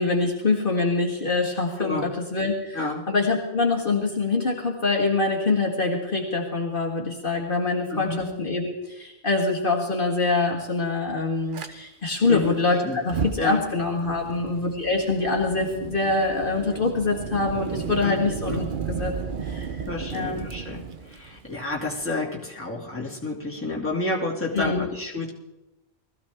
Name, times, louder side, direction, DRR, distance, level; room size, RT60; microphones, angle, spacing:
voice 1, 0.0-18.6 19.0-19.1 19.4-19.7 20.1-20.5 24.5-24.9, left 3 dB, 55° left, 0 dB, 1.9 m, -25 dB
voice 2, 7.9-8.2 12.3-12.5 12.8-13.0 13.4-13.6 18.0-18.2 18.5-18.7 19.9-25.3, left 2 dB, 10° left, -3 dB, 2.5 m, -30 dB
Fire, 11.5-11.7 12.9-22.0, right 6 dB, 50° right, 0.9 m, -34 dB
20.5 x 14.5 x 3.5 m, 0.93 s
omnidirectional pair, 1.1 m